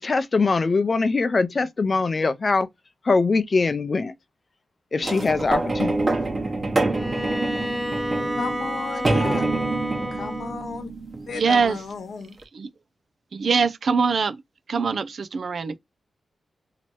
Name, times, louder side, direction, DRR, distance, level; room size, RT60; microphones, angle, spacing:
voice 1, 0.0-2.7 3.1-4.1 4.9-5.9, left 4 dB, 35° left, 0.6 m, -22 dB
sound 1, 5.0-11.8 12.4-12.5, right 2 dB, 35° right, 1.2 m, -26 dB
Bowed string instrument, 6.9-10.6, equal, ahead, 0.8 m, -30 dB
voice 2, 8.4-9.5 10.1-10.9 11.3-12.4, left 5 dB, 70° left, 0.9 m, -33 dB
voice 3, 11.3-11.8 12.5-12.7 13.3-14.4 14.7-15.8, right 5 dB, 60° right, 0.5 m, -23 dB
2.9 x 2.9 x 4.5 m
wide cardioid pair, 115°, 0 cm